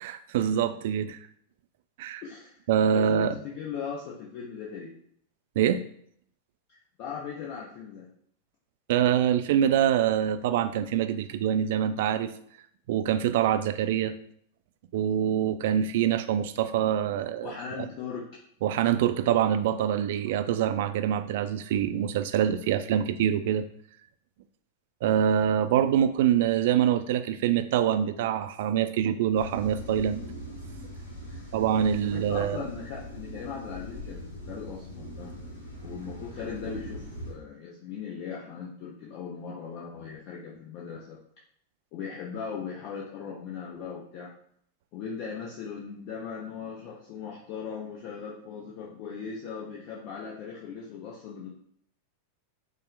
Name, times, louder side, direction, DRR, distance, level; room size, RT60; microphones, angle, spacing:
voice 1, 0.0-1.2 2.0-2.2 2.7-3.3 5.6-5.8 8.9-12.3 12.9-14.1 14.9-17.9 18.6-23.7 25.0-30.2 31.5-32.6, right 9 dB, 55° right, 9 dB, 0.3 m, -25 dB
voice 2, 2.2-2.6 2.9-4.9 7.0-8.1 17.4-18.3 31.3-31.5 32.0-35.4 35.8-41.2 41.9-44.3 44.9-51.5, left 6 dB, 45° left, -4 dB, 0.7 m, -38 dB
sound 1, 29.3-37.3, equal, 70° left, 1.0 m, -41 dB
5.4 x 2.1 x 3.3 m, 0.66 s
figure-of-eight pair, 90°, 0 cm